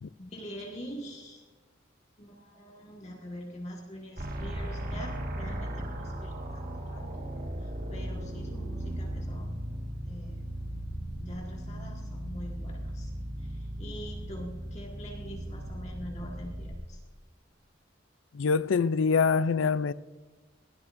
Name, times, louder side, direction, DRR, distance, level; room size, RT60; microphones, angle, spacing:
voice 1, 0.2-1.4 2.2-6.0 6.2-7.3 7.6-9.5 10.0-10.4 11.2-13.1 13.4-17.0, equal, 35° left, 2.0 m, -44 dB
sound 1, 4.2-16.7, right 1 dB, 50° right, 1.7 m, -37 dB
voice 2, 18.3-19.9, left 5 dB, 85° left, 0.4 m, -25 dB
21.5 x 15.5 x 2.6 m
head